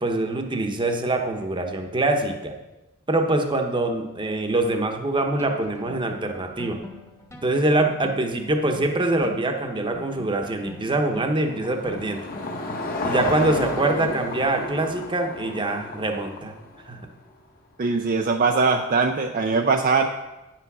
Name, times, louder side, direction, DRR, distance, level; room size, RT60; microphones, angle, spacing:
voice 1, 0.0-2.5 3.1-6.8 7.4-12.2 13.0-16.5 16.9-17.0, right 2 dB, 25° right, 4 dB, 0.9 m, -24 dB
sound 1, 5.4-13.0, left 2 dB, 15° left, 1.1 m, -44 dB
Car passing by / Engine, 10.5-17.0, left 2 dB, 45° left, 1.2 m, -32 dB
voice 2, 17.8-20.1, right 4 dB, 40° right, 4 dB, 0.5 m, -21 dB
9.1 x 5.9 x 6.1 m, 1.0 s
head